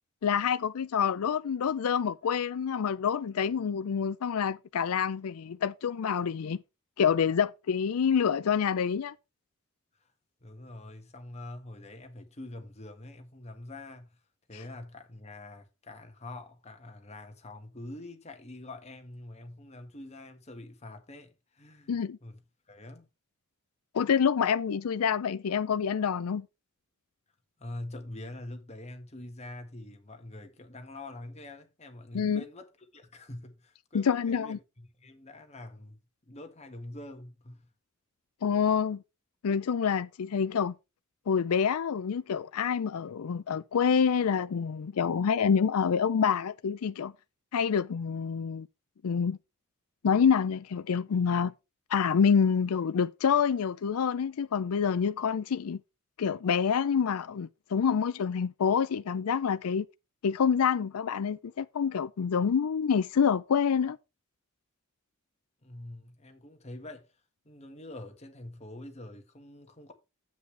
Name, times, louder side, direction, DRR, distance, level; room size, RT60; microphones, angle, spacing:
voice 1, 0.2-6.6 7.0-9.1 21.9-22.2 23.9-26.5 32.1-32.4 33.9-34.6 38.4-39.0 39.4-40.7 41.3-47.1 47.5-48.7 49.0-49.4 50.0-51.5 51.9-55.8 56.2-59.9 60.2-64.0, left 7 dB, 80° left, 0.4 m, -27 dB
voice 2, 10.4-14.2 14.5-22.4 22.7-23.1 27.6-32.7 32.9-37.7 65.6-67.1 67.5-69.9, left 1 dB, 30° left, 1.6 m, -45 dB
9.4 x 8.2 x 3.4 m
head